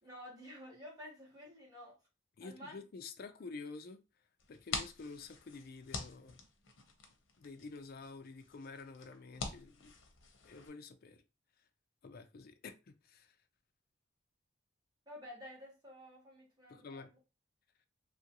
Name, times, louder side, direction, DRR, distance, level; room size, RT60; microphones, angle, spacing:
voice 1, 0.0-2.0 2.4-2.8 15.1-17.2, left 1 dB, 20° right, 1.3 m, -51 dB
voice 2, 2.4-4.0 4.5-6.4 7.4-9.9 10.4-11.2 12.0-13.3 16.7-17.1, left 4 dB, 50° left, 0.4 m, -49 dB
sound 1, 4.4-10.7, left 4 dB, 85° left, 0.7 m, -46 dB
2.9 x 2.5 x 2.8 m
head